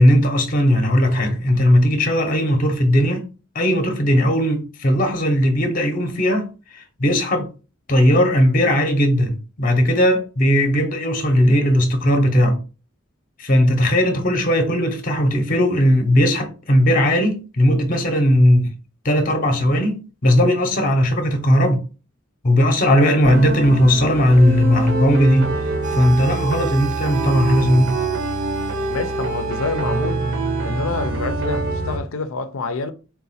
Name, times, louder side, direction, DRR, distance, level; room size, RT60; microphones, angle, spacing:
voice 1, 0.0-3.3 3.5-7.5 7.9-12.6 13.4-18.7 19.0-21.8 22.4-25.5 25.9-28.0, equal, 40° left, 0.7 m, -17 dB
sound 1, 23.2-32.0, right 2 dB, 75° right, 1.1 m, -25 dB
sound 2, 25.8-31.1, right 13 dB, 35° right, 0.5 m, -33 dB
voice 2, 28.9-30.3 30.6-32.9, left 3 dB, 85° left, 0.5 m, -27 dB
3.9 x 2.2 x 4.1 m
head